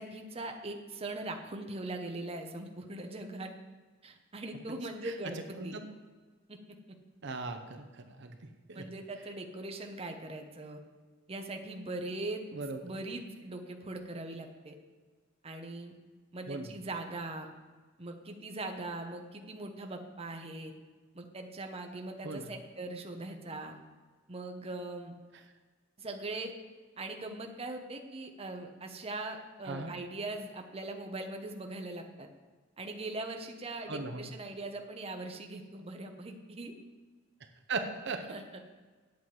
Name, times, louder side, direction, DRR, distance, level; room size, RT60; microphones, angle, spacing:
voice 1, 0.0-3.5 4.0-5.8 6.5-6.6 8.7-10.8 11.3-12.4 12.8-14.8 15.4-15.9 16.3-17.5 18.0-20.7 21.1-23.7 24.3-25.2 26.0-26.5 27.0-32.3 32.8-36.7 38.3-38.6, right 2 dB, 30° right, 4 dB, 0.9 m, -41 dB
voice 2, 7.2-8.4 8.7-8.8 12.5-13.0 16.5-16.7 22.2-22.5 29.7-29.9 33.9-34.3 37.7-38.2, right 3 dB, 60° right, 6 dB, 0.8 m, -38 dB
9.0 x 8.3 x 4.8 m, 1.4 s
head